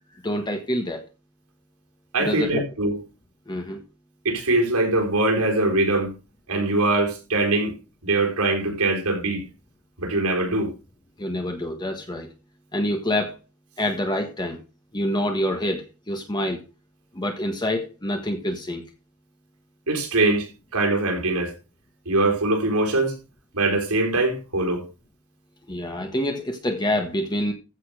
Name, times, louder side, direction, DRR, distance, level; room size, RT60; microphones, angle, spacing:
voice 1, 0.2-1.0 2.2-2.6 3.5-3.8 11.2-12.3 12.7-13.4 13.8-14.6 14.9-16.6 17.1-18.8 25.7-27.5, left 1 dB, 20° left, 1.5 m, -26 dB
voice 2, 2.1-3.0 4.2-6.1 6.5-7.7 8.0-9.4 10.0-10.7 19.9-21.5 22.1-23.2 23.5-24.8, right 2 dB, 80° right, 4.6 m, -22 dB
15.0 x 5.5 x 6.6 m
head